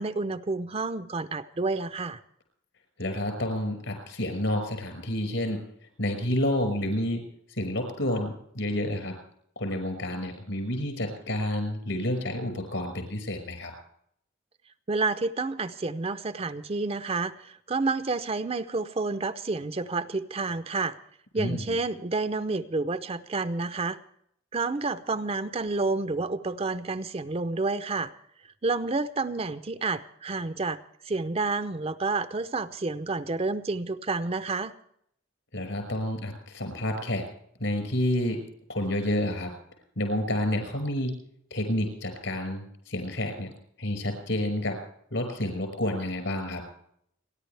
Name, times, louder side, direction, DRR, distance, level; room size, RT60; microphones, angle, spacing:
voice 1, 0.0-2.2 14.9-21.0 21.3-24.0 24.5-28.1 28.6-30.8 31.0-34.7, right 3 dB, 30° right, 12 dB, 0.6 m, -29 dB
voice 2, 3.0-5.6 6.0-7.2 7.6-9.2 9.6-13.7 21.4-21.8 35.5-37.3 37.6-38.4 38.7-39.5 40.0-41.1 41.5-43.5 43.8-44.8 45.1-46.6, left 1 dB, 70° left, 7 dB, 5.5 m, -29 dB
30.0 x 11.0 x 3.3 m, 0.69 s
head